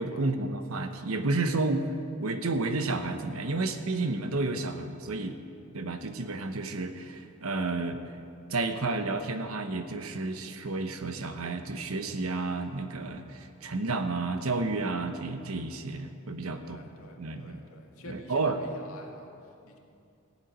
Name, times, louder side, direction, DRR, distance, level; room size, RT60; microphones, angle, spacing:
voice 1, 0.0-1.9 2.2-5.4 5.7-8.0 8.5-16.8 17.2-17.6 18.1-18.6, right 3 dB, 80° right, 8 dB, 1.0 m, -31 dB
voice 2, 16.6-19.8, left 2 dB, 85° left, 1 dB, 2.0 m, -49 dB
15.5 x 7.3 x 9.4 m, 2.6 s
head